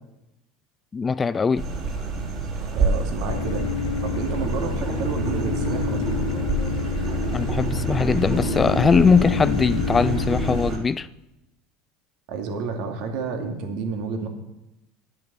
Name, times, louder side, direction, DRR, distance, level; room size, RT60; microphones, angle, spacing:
voice 1, 0.9-1.7 7.3-11.1, left 5 dB, 25° left, 18 dB, 0.4 m, -21 dB
sound 1, 1.6-10.8, right 3 dB, 40° right, 3.3 m, -27 dB
voice 2, 2.7-3.6 4.0-6.0 12.3-14.3, right 5 dB, 65° right, 3 dB, 2.4 m, -30 dB
sound 2, 3.3-10.6, left 7 dB, 80° left, 1.0 m, -29 dB
10.5 x 9.0 x 6.9 m, 0.93 s
hypercardioid pair, 85°, 0 cm